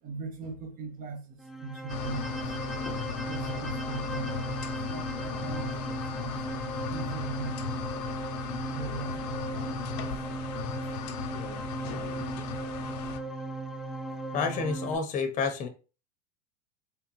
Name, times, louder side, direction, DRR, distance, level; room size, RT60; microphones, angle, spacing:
voice 1, 0.0-2.5 3.2-4.4 4.7-8.0 8.7-9.9 10.8-10.9 13.6-13.7, right 4 dB, 40° right, 1.1 m, -40 dB
sound 1, 1.4-14.9, right 2 dB, ahead, 0.5 m, -37 dB
sound 2, 1.9-13.2, left 7 dB, 75° left, 0.7 m, -37 dB
voice 2, 14.3-15.7, left 5 dB, 35° left, 0.8 m, -30 dB
3.6 x 3.4 x 3.0 m
supercardioid pair, 110°, 21 cm